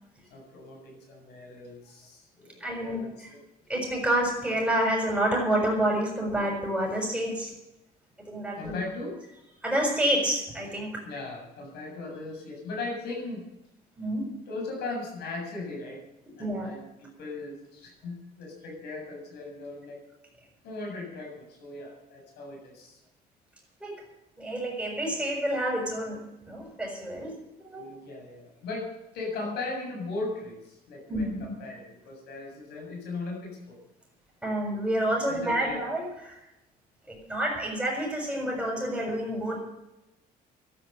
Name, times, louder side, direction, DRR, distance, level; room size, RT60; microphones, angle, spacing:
voice 1, 0.3-3.3 8.6-9.2 11.0-13.5 14.5-16.0 16.4-20.0 20.6-23.0 27.7-33.8 35.3-35.8, left 3 dB, 75° left, 1 dB, 7.4 m, -38 dB
voice 2, 2.6-3.0 3.7-7.5 8.2-8.7 9.6-11.0 14.0-14.2 16.4-16.7 23.8-23.9 24.4-26.2 26.4-27.3 27.6-27.9 31.1-31.5 34.4-36.4 37.1-39.6, right 1 dB, 5° right, -3 dB, 6.3 m, -28 dB
13.0 x 11.5 x 8.0 m, 0.91 s
cardioid pair, 110°, 17 cm